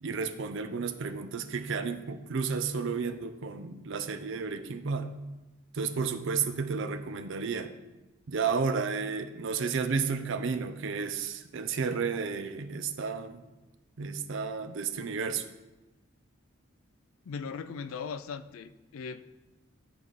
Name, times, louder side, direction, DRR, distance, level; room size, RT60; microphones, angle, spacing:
voice 1, 0.0-5.1 5.7-7.7 8.3-13.4 14.0-15.5, right 5 dB, 60° right, 9 dB, 0.5 m, -32 dB
voice 2, 17.3-19.2, left 5 dB, 85° left, 13 dB, 0.4 m, -39 dB
10.5 x 4.0 x 3.2 m, 1.1 s
head